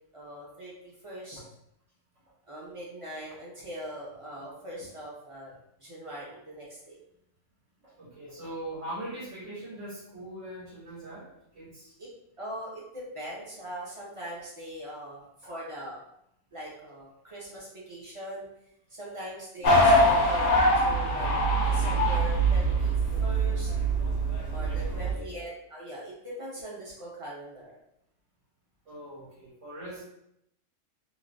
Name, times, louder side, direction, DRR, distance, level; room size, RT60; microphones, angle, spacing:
voice 1, 0.1-1.4 2.5-5.5 5.8-7.0 12.4-16.0 16.5-18.5 18.9-20.5 20.8-21.3 21.7-22.9 23.2-23.7 24.5-27.8 30.0-30.1, equal, 35° right, -5 dB, 0.6 m, -41 dB
voice 2, 7.8-11.9 15.4-15.5 24.8-25.3 28.8-30.0, right 1 dB, 75° right, -8 dB, 1.5 m, -41 dB
sound 1, 19.6-25.1, right 1 dB, 55° left, 0.7 m, -23 dB
3.1 x 2.1 x 2.5 m, 0.78 s
omnidirectional pair, 1.3 m